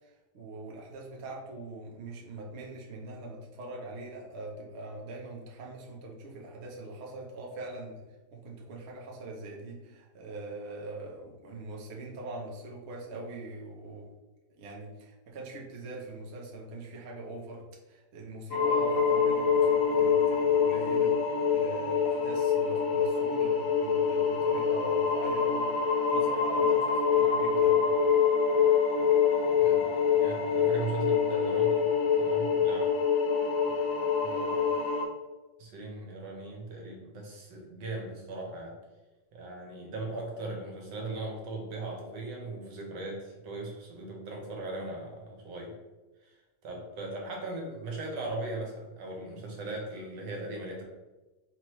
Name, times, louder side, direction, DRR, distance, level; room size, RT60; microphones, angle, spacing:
voice 1, 0.0-8.0 8.3-14.1 14.6-21.2 21.5-25.7 26.1-27.9, right 2 dB, 55° right, -2 dB, 0.8 m, -42 dB
sound 1, 18.5-35.0, left 6 dB, 60° left, 0.9 m, -25 dB
voice 2, 29.6-31.9 32.1-32.9 34.2-34.6 35.6-38.8 39.3-45.7 46.2-50.8, right 2 dB, 75° right, 0 dB, 1.6 m, -39 dB
4.5 x 3.0 x 3.0 m, 1.1 s
omnidirectional pair, 2.0 m